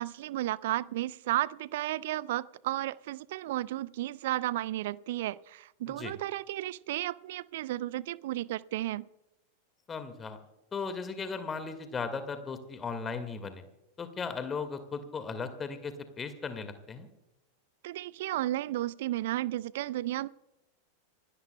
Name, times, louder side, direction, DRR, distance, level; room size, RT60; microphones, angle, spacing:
voice 1, 0.0-9.1 17.8-20.3, right 15 dB, 55° right, 21 dB, 0.5 m, -33 dB
voice 2, 9.9-10.4 10.7-13.6 14.0-17.1, left 5 dB, 20° left, 9 dB, 1.8 m, -37 dB
27.0 x 18.0 x 2.2 m, 0.93 s
figure-of-eight pair, 90°, 0 cm